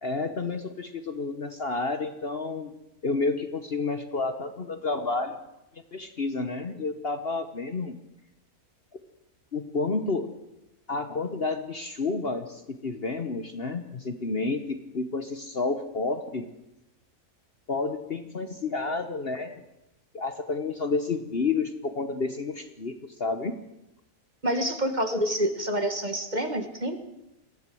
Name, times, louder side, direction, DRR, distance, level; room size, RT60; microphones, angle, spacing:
voice 1, 0.0-2.7 3.0-5.4 5.9-8.0 9.5-10.3 10.9-16.5 17.7-19.6 20.1-23.6, left 3 dB, 45° left, 9 dB, 1.2 m, -30 dB
voice 2, 24.4-27.0, right 1 dB, 30° right, 7 dB, 1.7 m, -27 dB
22.0 x 15.5 x 7.7 m, 0.90 s
omnidirectional pair, 1.6 m